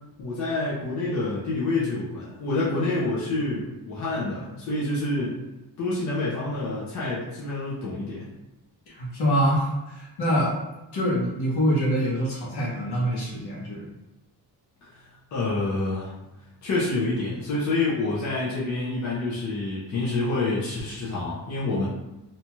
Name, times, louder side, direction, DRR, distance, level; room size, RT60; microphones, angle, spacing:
voice 1, 0.2-5.4 5.8-8.3 14.9-15.0 15.3-16.1 16.6-21.9, left 2 dB, 45° left, -7 dB, 0.7 m, -27 dB
voice 2, 8.9-10.5 10.9-13.9, equal, 70° left, -5 dB, 1.1 m, -25 dB
2.8 x 2.3 x 2.9 m, 0.99 s
wide cardioid pair, 180°, 40 cm